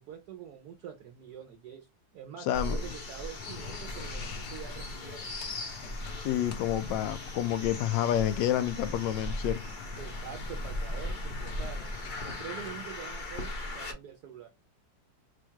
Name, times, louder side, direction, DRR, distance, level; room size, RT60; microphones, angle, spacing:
voice 1, 0.0-1.9 2.1-5.3 10.0-11.9 12.2-14.5, right 9 dB, 65° right, 1.1 m, -45 dB
voice 2, 2.4-3.0 6.2-9.6, left 11 dB, 85° left, 1.3 m, -29 dB
sound 1, 2.5-13.9, left 1 dB, 40° left, 0.7 m, -38 dB
sound 2, 3.4-12.9, left 7 dB, 70° left, 1.1 m, -47 dB
4.5 x 2.3 x 4.4 m
omnidirectional pair, 2.0 m